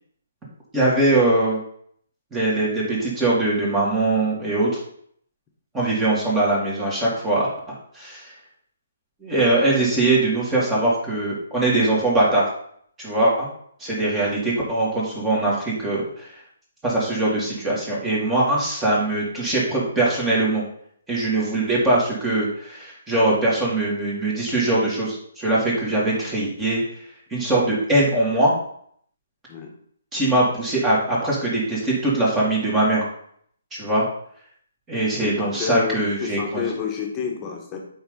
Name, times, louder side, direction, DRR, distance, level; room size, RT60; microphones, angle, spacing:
voice 1, 0.7-1.6 2.3-4.8 5.7-8.3 9.2-12.5 13.0-13.5 13.8-16.3 16.8-20.6 21.1-26.8 27.3-28.5 30.1-33.0 33.7-34.1 34.9-36.6, right 2 dB, 15° right, -5 dB, 2.7 m, -21 dB
voice 2, 35.2-37.8, left 7 dB, 25° left, 1 dB, 1.5 m, -29 dB
7.0 x 5.3 x 4.0 m, 0.64 s
figure-of-eight pair, 140°, 0 cm